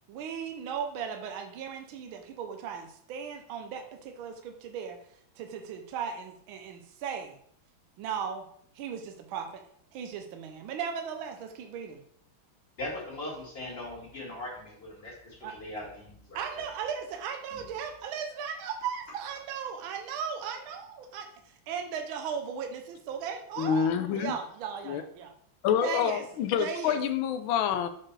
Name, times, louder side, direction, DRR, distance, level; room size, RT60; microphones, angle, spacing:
voice 1, 0.1-5.0 5.4-7.4 8.0-8.4 8.7-9.6 9.9-12.0 15.4-15.5 16.3-23.9 24.1-25.3 25.8-26.2 26.6-27.0, right 7 dB, 75° right, 5 dB, 1.5 m, -37 dB
voice 2, 12.8-16.6 17.5-17.6, left 1 dB, 30° left, -5 dB, 2.3 m, -40 dB
voice 3, 23.6-24.4 24.8-25.0 25.6-27.9, left 8 dB, 75° left, 9 dB, 1.4 m, -27 dB
7.4 x 4.4 x 3.2 m, 0.66 s
omnidirectional pair, 2.3 m